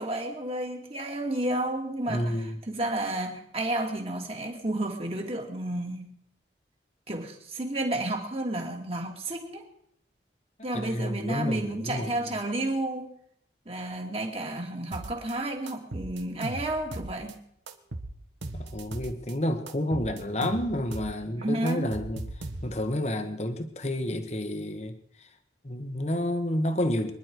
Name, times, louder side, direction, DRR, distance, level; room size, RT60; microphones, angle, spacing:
voice 1, 0.0-6.2 7.1-9.7 10.6-13.1 13.7-17.4 21.4-21.9, right 1 dB, 30° right, 2 dB, 2.5 m, -31 dB
voice 2, 2.1-2.6 10.7-12.2 18.5-25.3 25.6-27.1, left 1 dB, 35° left, 7 dB, 1.3 m, -30 dB
sound 1, 14.9-15.3 15.7-17.3 17.7-19.3 19.7-21.2 21.4-22.9, right 2 dB, 85° right, 1.5 m, -38 dB
25.0 x 11.0 x 4.7 m, 0.71 s
head